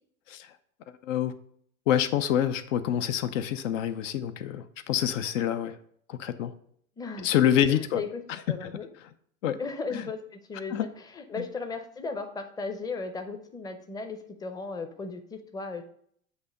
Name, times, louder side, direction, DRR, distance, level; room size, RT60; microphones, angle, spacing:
voice 1, 1.9-5.8 6.1-6.5 7.2-8.0 8.6-8.7 9.4-9.6 9.9-10.0 10.7-10.9 11.4-11.5, left 10 dB, 65° left, 11 dB, 0.6 m, -26 dB
voice 2, 7.0-7.3 7.7-8.2 8.5-8.9 9.6-15.8, left 4 dB, 10° left, 7 dB, 0.6 m, -36 dB
8.1 x 2.8 x 5.1 m, 0.65 s
hypercardioid pair, 85°, 42 cm